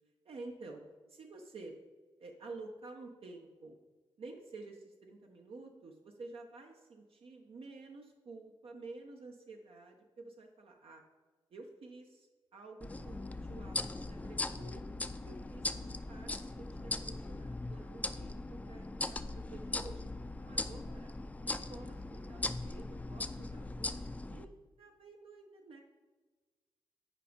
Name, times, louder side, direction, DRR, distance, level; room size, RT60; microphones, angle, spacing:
voice 1, 0.2-0.8 1.1-1.7 2.2-3.8 4.2-11.0 11.5-14.8 15.2-20.1 20.4-21.1 21.4-24.5 24.8-25.8, right 3 dB, 70° right, 2 dB, 0.8 m, -51 dB
sound 1, 12.8-24.4, left 2 dB, 15° left, 0.4 m, -40 dB
9.9 x 5.2 x 5.0 m, 1.3 s
wide cardioid pair, 145°, 10 cm